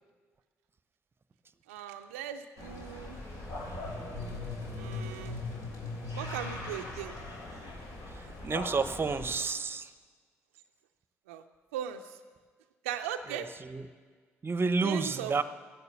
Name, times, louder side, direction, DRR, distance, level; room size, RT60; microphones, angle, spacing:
voice 1, 1.7-3.2 4.7-5.4 6.2-7.2 11.3-11.4 11.7-12.2 12.8-13.5 14.8-15.4, right 10 dB, 80° right, 6 dB, 0.5 m, -38 dB
sound 1, 2.6-9.4, left 2 dB, 60° left, 3.2 m, -39 dB
voice 2, 8.1-9.9 13.3-13.8 14.4-15.4, right 4 dB, 30° right, 13 dB, 0.8 m, -31 dB
15.0 x 11.0 x 7.0 m, 1.6 s
figure-of-eight pair, 45°, 7 cm